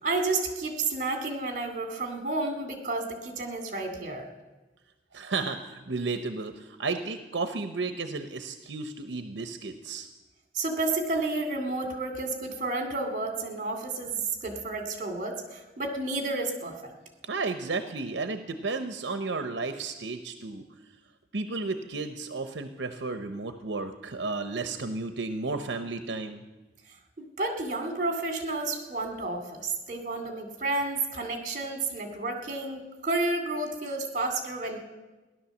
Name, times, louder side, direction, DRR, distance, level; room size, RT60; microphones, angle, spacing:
voice 1, 0.0-4.3 10.5-16.7 27.2-34.8, right 3 dB, 45° right, 5 dB, 2.3 m, -31 dB
voice 2, 5.1-10.1 17.2-20.6 21.3-26.4, right 3 dB, 80° right, 8 dB, 0.8 m, -33 dB
16.0 x 11.0 x 7.1 m, 1.2 s
head